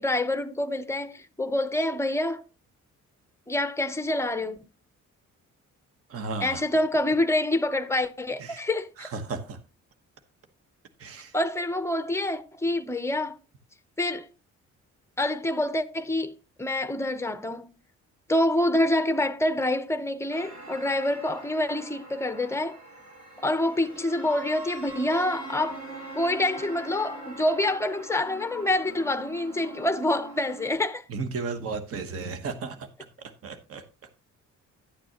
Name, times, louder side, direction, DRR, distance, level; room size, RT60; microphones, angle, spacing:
voice 1, 0.0-2.4 3.5-4.6 6.4-9.1 11.3-13.4 14.0-14.3 15.2-17.7 18.3-22.8 23.4-25.8 26.1-31.0, left 1 dB, 10° left, 0.7 m, -26 dB
voice 2, 6.1-6.6 8.4-8.6 9.0-9.6 11.0-11.3 31.1-32.9 33.2-33.8, right 4 dB, 50° right, 1.1 m, -34 dB
sound 1, 20.3-30.7, right 2 dB, 75° right, 6.3 m, -43 dB
11.5 x 9.0 x 2.9 m
cardioid pair, 155°, 30 cm